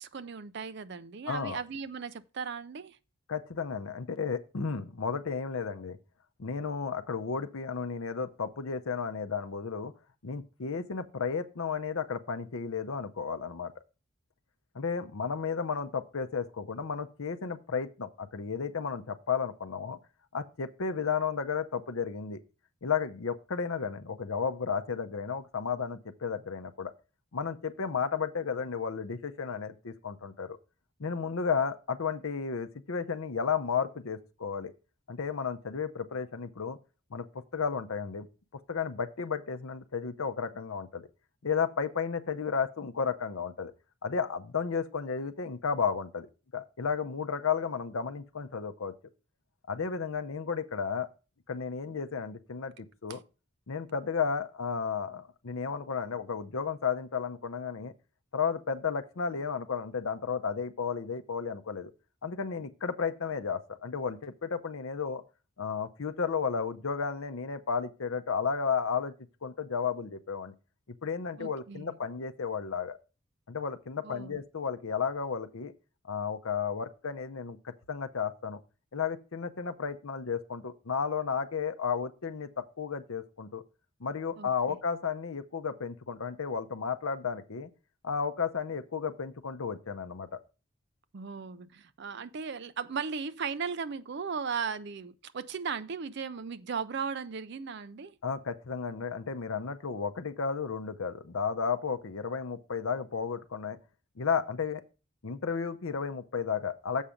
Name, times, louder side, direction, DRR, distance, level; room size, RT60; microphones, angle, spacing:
voice 1, 0.0-3.0 53.1-53.2 71.4-72.0 74.0-74.4 84.4-84.8 91.1-98.1, right 5 dB, 50° right, 0.4 m, -37 dB
voice 2, 1.3-1.6 3.3-6.0 6.4-9.9 10.2-13.7 14.7-20.0 20.3-22.4 22.8-26.9 27.3-30.6 31.0-34.7 35.1-36.8 37.1-37.3 37.5-38.3 38.7-41.1 41.4-43.7 44.0-46.3 46.5-48.9 49.7-51.1 51.5-53.2 53.7-57.9 58.3-61.9 62.2-65.2 65.6-69.1 69.4-70.5 71.0-73.0 73.5-75.7 76.1-78.6 78.9-83.6 84.0-87.7 88.0-90.4 98.2-103.8 104.2-104.8 105.2-107.0, left 6 dB, 75° left, 0.7 m, -33 dB
7.3 x 5.7 x 5.1 m
head